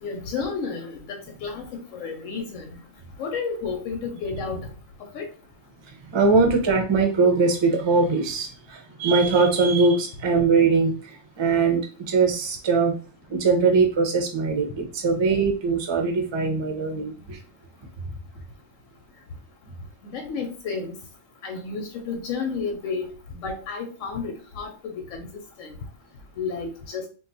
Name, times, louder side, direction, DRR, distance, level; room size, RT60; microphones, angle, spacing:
voice 1, 0.0-2.7 3.2-4.7 5.1-5.3 20.0-21.0 21.4-23.1 23.4-25.3 25.6-25.7 26.4-27.1, left 5 dB, 90° left, 4 dB, 1.0 m, -31 dB
voice 2, 6.1-12.9 13.3-17.4, right 4 dB, 35° right, 3 dB, 0.5 m, -21 dB
2.5 x 2.3 x 3.8 m, 0.36 s
omnidirectional pair, 1.3 m